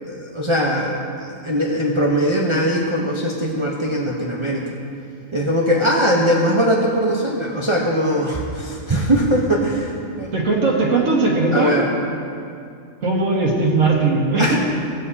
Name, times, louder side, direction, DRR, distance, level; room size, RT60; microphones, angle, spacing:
voice 1, 0.0-4.8 5.3-10.3 11.5-11.8 14.4-14.5, equal, 30° right, -2 dB, 0.7 m, -20 dB
voice 2, 10.3-11.8 13.0-14.6, right 3 dB, 70° right, -3 dB, 2.0 m, -18 dB
17.5 x 7.6 x 2.8 m, 2.5 s
omnidirectional pair, 1.4 m